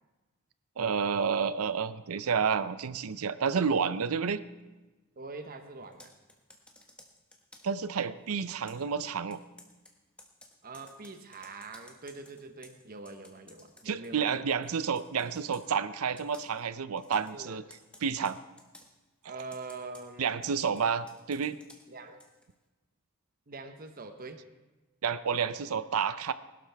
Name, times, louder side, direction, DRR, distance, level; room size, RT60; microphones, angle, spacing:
voice 1, 0.8-4.4 7.6-9.4 13.8-17.6 18.0-18.4 20.2-21.6 25.0-26.3, right 6 dB, 75° right, 14 dB, 0.6 m, -30 dB
voice 2, 5.2-6.1 10.6-14.5 17.3-17.6 19.2-20.4 21.9-22.2 23.5-24.4, right 3 dB, 40° right, 6 dB, 1.0 m, -44 dB
Computer keyboard, 5.8-7.8 8.7-14.4 14.6-15.7 16.2-16.6 17.0-17.4 17.7-18.9 19.4-22.5, left 1 dB, 5° left, 1.3 m, -56 dB
20.5 x 12.0 x 3.5 m, 1.1 s
head